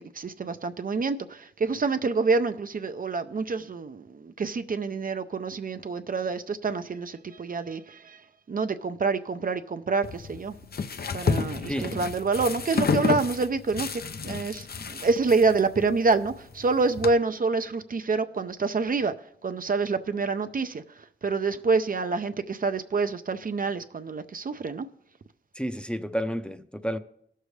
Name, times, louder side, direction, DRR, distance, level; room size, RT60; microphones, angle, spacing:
voice 1, 0.1-8.2 8.5-10.5 11.1-19.1 19.4-20.8 21.2-24.9, right 4 dB, 50° right, 0.6 m, -27 dB
sound 1, 10.0-17.1, left 5 dB, 60° left, 0.6 m, -31 dB
voice 2, 25.6-27.0, equal, 5° left, 0.6 m, -30 dB
17.0 x 6.7 x 3.2 m
wide cardioid pair, 65°, 18 cm